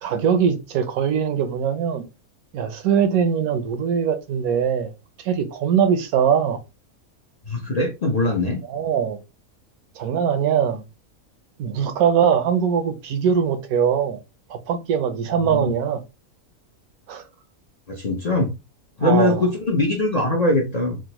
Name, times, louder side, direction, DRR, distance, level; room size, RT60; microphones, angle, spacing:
voice 1, 0.0-2.0 2.5-4.9 5.2-6.6 8.7-9.2 10.0-10.8 11.6-14.2 14.5-16.0 17.1-17.2 19.0-19.5, right 7 dB, 80° right, 1.0 m, -21 dB
voice 2, 7.5-8.6 15.4-15.7 18.0-18.5 19.0-21.0, left 2 dB, 55° left, 0.4 m, -21 dB
3.6 x 2.0 x 2.9 m
omnidirectional pair, 1.5 m